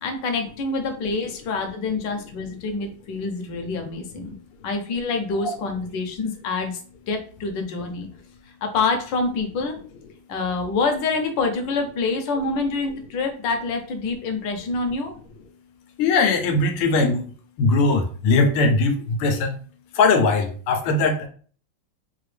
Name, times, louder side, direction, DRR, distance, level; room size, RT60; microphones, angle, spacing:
voice 1, 0.0-4.3 4.6-6.8 7.1-8.1 8.6-9.8 10.3-15.1, left 3 dB, 65° left, 4 dB, 1.4 m, -26 dB
voice 2, 16.0-17.3 17.6-19.5 19.9-21.3, left 3 dB, 90° left, 5 dB, 1.6 m, -20 dB
4.9 x 2.7 x 3.2 m, 0.44 s
omnidirectional pair, 2.3 m